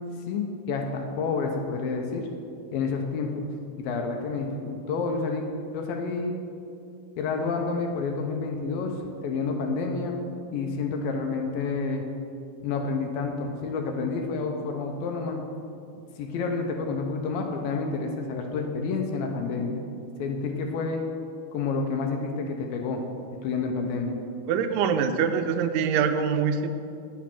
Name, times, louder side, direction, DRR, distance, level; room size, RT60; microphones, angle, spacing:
voice 1, 0.3-2.3 2.7-3.5 3.8-5.5 5.7-6.3 7.2-8.9 9.2-10.2 10.5-12.0 12.6-15.5 16.2-19.8 20.2-21.0 21.5-23.1 23.4-24.2, left 4 dB, 75° left, 3 dB, 2.3 m, -29 dB
voice 2, 24.5-26.7, right 6 dB, 90° right, 8 dB, 2.7 m, -24 dB
9.4 x 7.5 x 5.8 m, 2.5 s
omnidirectional pair, 4.5 m